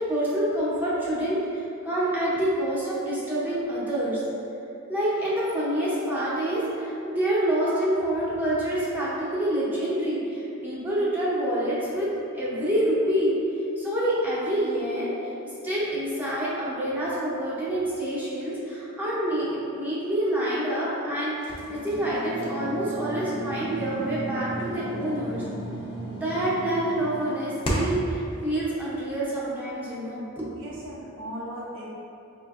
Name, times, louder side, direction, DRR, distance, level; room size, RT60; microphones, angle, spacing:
voice 1, 0.0-4.2 4.9-12.1 12.3-13.3 13.8-15.3 15.6-25.4 26.2-30.4, right 1 dB, 10° right, -9 dB, 0.7 m, -27 dB
sound 1, 21.4-28.1, right 1 dB, 25° left, 0.5 m, -33 dB
voice 2, 30.5-31.8, equal, 60° right, -6 dB, 0.5 m, -37 dB
4.9 x 2.5 x 2.3 m, 2.8 s
head